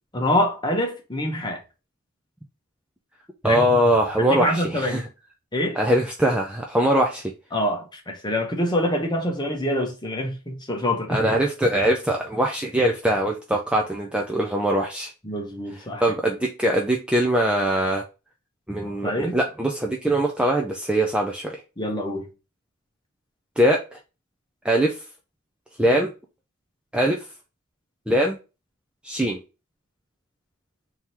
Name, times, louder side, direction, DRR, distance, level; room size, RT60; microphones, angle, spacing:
voice 1, 0.1-1.6 3.4-3.6 4.2-5.0 5.5-5.8 7.5-11.2 15.2-16.0 18.8-19.4 21.8-22.3, left 1 dB, 20° left, 1.1 m, -25 dB
voice 2, 3.4-5.1 5.8-7.3 11.1-15.1 15.7-18.0 18.7-21.6 23.6-24.0 24.6-25.0 25.8-26.1 26.9-27.3 28.1-28.4 29.0-29.4, right 1 dB, 5° right, 0.4 m, -22 dB
3.7 x 2.9 x 4.4 m
head